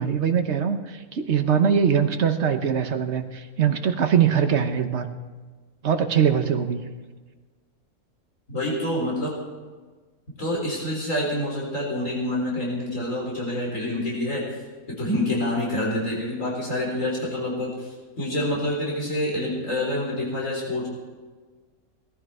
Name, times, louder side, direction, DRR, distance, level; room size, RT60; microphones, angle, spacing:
voice 1, 0.0-5.1 5.8-6.8, right 7 dB, 50° right, 8 dB, 1.2 m, -22 dB
voice 2, 8.5-9.3 10.4-14.4 14.9-20.9, left 1 dB, 60° left, -3 dB, 4.5 m, -27 dB
18.0 x 14.5 x 4.4 m, 1.4 s
omnidirectional pair, 1.6 m